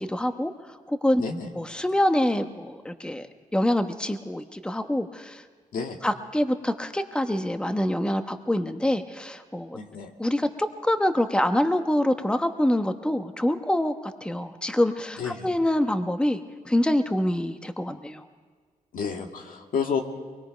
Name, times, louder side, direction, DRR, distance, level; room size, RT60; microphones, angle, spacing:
voice 1, 0.1-0.5 0.9-1.2 1.6-3.3 3.5-5.4 6.0-9.8 10.2-18.2, left 1 dB, 5° left, 7 dB, 1.1 m, -25 dB
voice 2, 9.7-10.1 15.2-15.5 18.9-20.0, left 6 dB, 75° left, 3 dB, 2.0 m, -30 dB
23.5 x 21.5 x 5.2 m, 1.5 s
cardioid pair, 80°, 14 cm